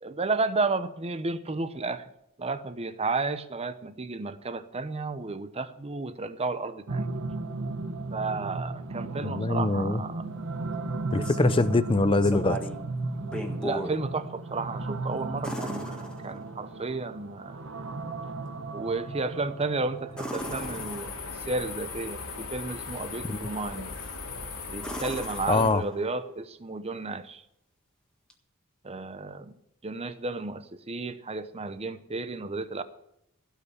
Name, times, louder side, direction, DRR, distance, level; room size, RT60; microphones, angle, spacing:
voice 1, 0.0-2.1 2.4-7.1 8.1-10.3 13.6-17.6 18.7-23.9 24.7-27.4 28.8-29.5 29.8-32.8, right 3 dB, 30° right, 0.8 m, -32 dB
sound 1, 6.9-21.0, right 3 dB, 60° right, 1.1 m, -35 dB
voice 2, 9.2-10.0 11.1-12.6 23.3-23.4 25.5-25.8, left 2 dB, 25° left, 0.6 m, -23 dB
sound 2, 10.9-11.7 12.2-12.8 13.2-14.0 15.4-16.7 20.1-21.4 23.9-24.3 24.8-26.2 28.3-28.4, equal, 5° left, 1.7 m, -37 dB
sound 3, 20.4-25.7, left 4 dB, 90° left, 2.3 m, -38 dB
16.5 x 5.5 x 9.9 m
head